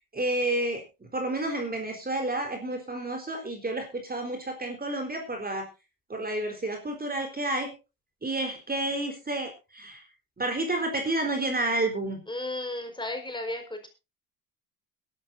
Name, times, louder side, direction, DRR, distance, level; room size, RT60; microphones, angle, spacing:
voice 1, 0.1-0.8 1.1-5.7 6.1-7.7 8.2-10.0 10.4-12.2, right 2 dB, 20° right, 4 dB, 4.1 m, -30 dB
voice 2, 12.3-13.9, left 2 dB, 10° left, 5 dB, 4.9 m, -34 dB
22.0 x 12.0 x 2.7 m, 0.29 s
supercardioid pair, 75°, 42 cm